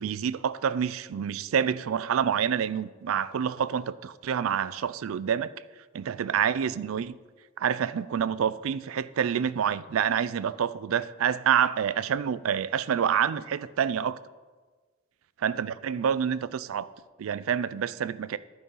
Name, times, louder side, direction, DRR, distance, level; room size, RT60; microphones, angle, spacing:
voice 1, 0.0-5.5 5.9-7.1 7.6-14.2 15.4-16.9 17.2-18.4, right 8 dB, 80° right, 17 dB, 0.4 m, -27 dB
11.0 x 5.3 x 5.5 m, 1.4 s
head